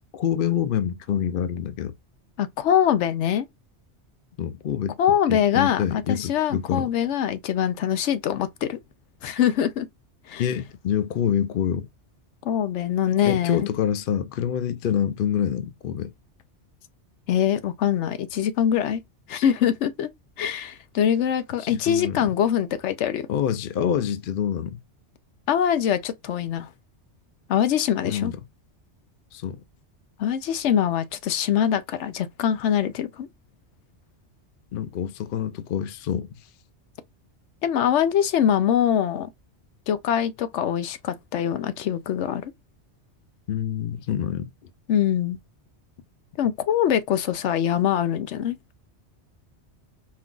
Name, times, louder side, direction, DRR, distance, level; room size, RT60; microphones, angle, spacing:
voice 1, 0.1-1.9 4.4-5.0 5.3-6.9 10.4-11.9 13.2-16.1 21.6-22.3 23.3-24.8 28.0-28.3 29.3-29.6 34.7-36.3 43.5-44.5, left 9 dB, 60° left, 0.6 m, -26 dB
voice 2, 2.4-3.5 5.0-8.8 9.2-9.9 10.3-10.4 12.4-13.7 17.3-19.0 19.3-20.1 20.4-23.3 25.5-26.7 27.5-28.3 30.2-33.3 37.6-39.3 39.9-42.5 44.9-45.4 46.4-48.6, left 9 dB, 85° left, 0.9 m, -23 dB
4.5 x 2.3 x 3.7 m
omnidirectional pair, 1.2 m